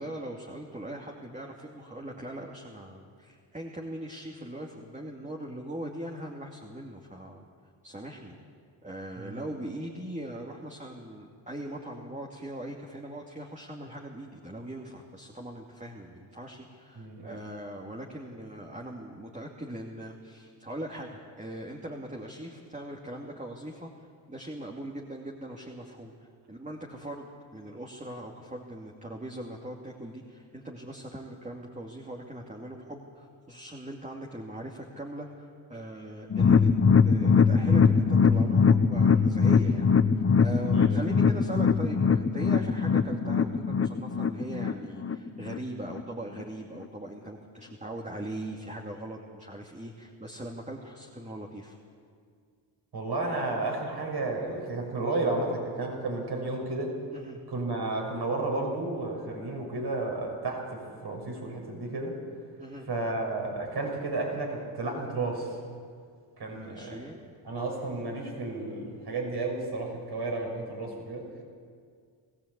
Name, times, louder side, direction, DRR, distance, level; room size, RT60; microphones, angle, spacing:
voice 1, 0.0-7.4 7.8-8.4 8.8-23.9 24.3-26.1 26.5-36.7 37.0-39.9 40.1-51.8 57.1-57.4 62.6-62.9 66.6-67.2, right 1 dB, 15° right, -1 dB, 2.6 m, -40 dB
voice 2, 9.2-9.5 16.9-17.4 40.5-41.0 52.9-57.0 57.5-62.2 62.9-65.6 66.4-67.0 67.4-71.3, right 2 dB, 55° right, 1 dB, 6.4 m, -32 dB
sound 1, 36.3-45.6 45.9-46.0 46.4-46.5, left 5 dB, 30° left, 1.0 m, -22 dB
20.0 x 16.5 x 8.3 m, 2.1 s
supercardioid pair, 60°, 47 cm